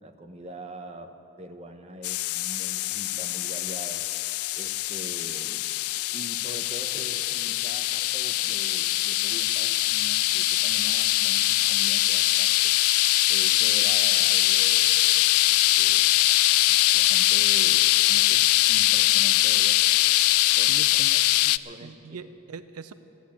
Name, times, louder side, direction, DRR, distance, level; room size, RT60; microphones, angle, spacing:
voice 1, 0.0-4.1 4.5-5.7 6.1-12.8 13.3-16.2 16.7-19.8 20.6-21.2 21.6-22.2, right 1 dB, 30° right, 5 dB, 0.9 m, -43 dB
sound 1, 2.0-21.6, left 16 dB, 80° left, 0.3 m, -22 dB
voice 2, 20.7-21.2 21.4-21.5 21.8-22.9, right 5 dB, 90° right, 12 dB, 0.6 m, -41 dB
14.0 x 10.5 x 8.4 m, 2.9 s
head